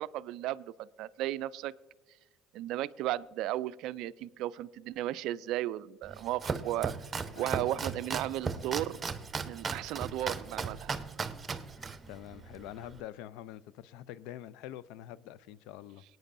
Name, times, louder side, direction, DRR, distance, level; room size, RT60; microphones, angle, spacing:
voice 1, 0.0-1.7 2.5-6.9 7.3-9.0 9.5-11.0, right 14 dB, 65° right, 18 dB, 0.3 m, -35 dB
Domestic sounds home sounds, 6.0-13.0, right 5 dB, 30° right, 0.8 m, -37 dB
voice 2, 7.3-7.8 11.8-16.0, left 12 dB, 70° left, 18 dB, 0.4 m, -46 dB
24.0 x 9.1 x 2.6 m, 1.2 s
hypercardioid pair, 60°, 0 cm